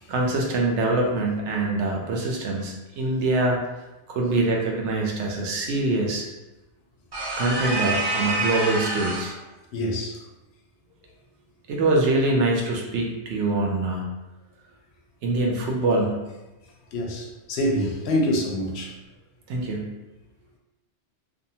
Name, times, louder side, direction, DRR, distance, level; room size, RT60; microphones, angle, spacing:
voice 1, 0.1-3.6 4.1-6.3 7.4-9.3 11.7-14.0 15.2-16.2 19.5-19.9, right 2 dB, 80° right, 0 dB, 0.9 m, -24 dB
sound 1, 7.1-9.4, right 2 dB, 35° right, 0.4 m, -27 dB
voice 2, 9.7-10.2 16.9-19.0, left 1 dB, 70° left, 0 dB, 0.8 m, -26 dB
2.6 x 2.3 x 2.7 m, 1.0 s
omnidirectional pair, 1.2 m